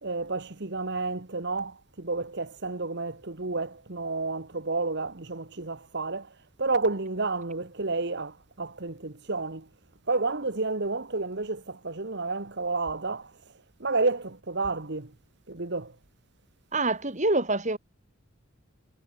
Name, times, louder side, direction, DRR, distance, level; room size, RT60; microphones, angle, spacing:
voice 1, 0.0-9.7 10.1-13.3 13.8-15.1 15.5-15.9, right 3 dB, 55° right, 1.6 m, -30 dB
voice 2, 16.7-17.8, right 2 dB, 35° right, 5.0 m, -25 dB
head